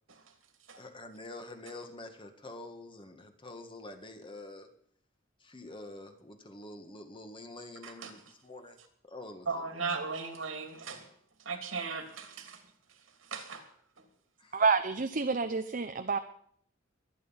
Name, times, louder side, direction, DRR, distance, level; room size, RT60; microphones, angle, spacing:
voice 1, 0.7-4.7 5.4-8.8 9.0-10.0 14.4-14.6, left 2 dB, 25° left, 6 dB, 1.8 m, -47 dB
voice 2, 9.5-11.0 11.4-12.6 13.3-13.7, right 4 dB, 85° right, 6 dB, 2.9 m, -37 dB
voice 3, 14.5-16.2, right 4 dB, 45° right, 7 dB, 0.8 m, -28 dB
23.0 x 9.3 x 5.8 m, 0.64 s
head